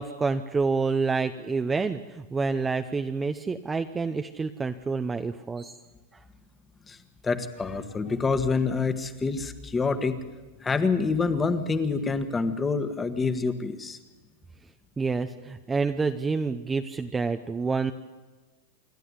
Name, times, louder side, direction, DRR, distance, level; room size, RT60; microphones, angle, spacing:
voice 1, 0.0-5.8 15.0-17.9, right 4 dB, 15° right, 7 dB, 0.7 m, -28 dB
voice 2, 7.2-10.2 10.6-14.0, left 4 dB, 15° left, 10 dB, 1.4 m, -27 dB
27.5 x 11.5 x 9.7 m, 1.3 s
supercardioid pair, 145°, 0 cm